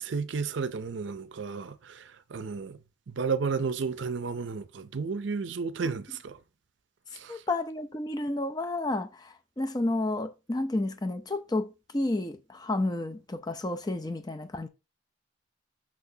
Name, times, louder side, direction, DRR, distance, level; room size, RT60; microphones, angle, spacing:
voice 1, 0.0-2.8 3.1-6.4 7.1-7.4, right 5 dB, 70° right, 0.5 m, -32 dB
voice 2, 7.3-14.7, left 2 dB, 20° left, 0.5 m, -31 dB
6.1 x 5.9 x 2.7 m
head